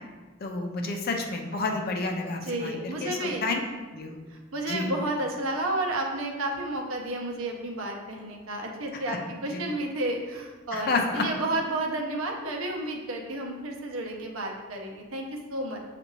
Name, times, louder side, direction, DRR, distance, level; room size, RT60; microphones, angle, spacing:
voice 1, 0.4-3.6 3.9-4.2 4.7-4.9 9.1-9.2 9.5-9.6 10.7-11.3, left 3 dB, 50° left, 3 dB, 0.5 m, -30 dB
voice 2, 2.4-3.5 4.3-10.9 11.1-15.8, right 1 dB, 85° right, 2 dB, 0.7 m, -31 dB
6.5 x 2.5 x 3.1 m, 1.3 s
head